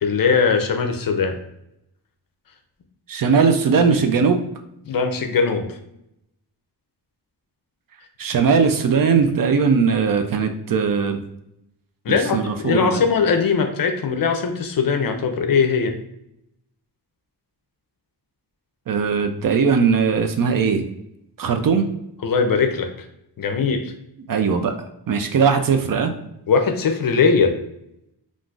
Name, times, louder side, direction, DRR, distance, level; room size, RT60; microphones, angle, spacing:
voice 1, 0.0-1.4 4.9-5.8 12.0-15.9 22.2-22.9 23.4-23.9 26.5-27.5, left 5 dB, 55° left, 6 dB, 0.5 m, -20 dB
voice 2, 3.1-4.4 8.2-11.2 12.1-13.0 18.9-20.8 21.4-21.9 24.3-24.7 25.1-26.1, right 5 dB, 55° right, 6 dB, 0.5 m, -19 dB
3.7 x 2.5 x 2.3 m, 0.81 s
wide cardioid pair, 105°, 42 cm